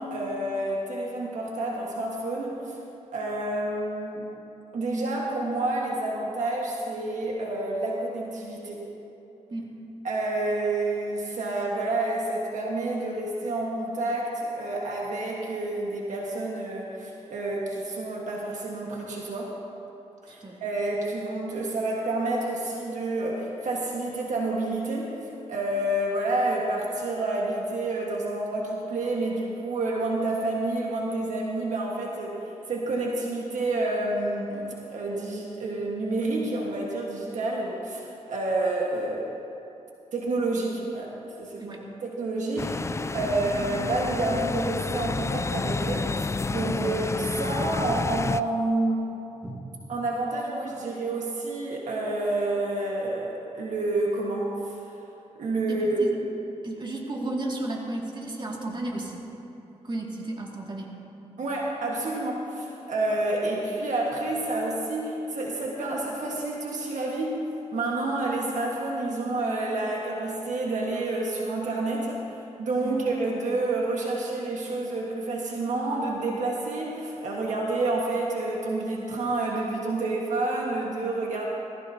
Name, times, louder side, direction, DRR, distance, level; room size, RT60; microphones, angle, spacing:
voice 1, 0.0-2.8 3.1-4.3 4.7-8.9 10.0-19.5 20.2-39.3 40.1-41.1 41.4-46.2 46.5-49.1 49.9-54.8 55.4-56.0 61.4-67.4 67.7-72.2 72.6-81.5, right 2 dB, 75° right, -2 dB, 1.6 m, -29 dB
voice 2, 20.3-20.6 41.6-41.9 49.4-49.6 55.7-56.1 56.6-59.2 59.8-60.9 72.8-73.0, right 2 dB, 40° right, -1 dB, 2.3 m, -33 dB
sound 1, 42.6-48.4, left 3 dB, 25° left, 0.3 m, -30 dB
18.0 x 15.5 x 2.9 m, 3.0 s
cardioid pair, 60°, 13 cm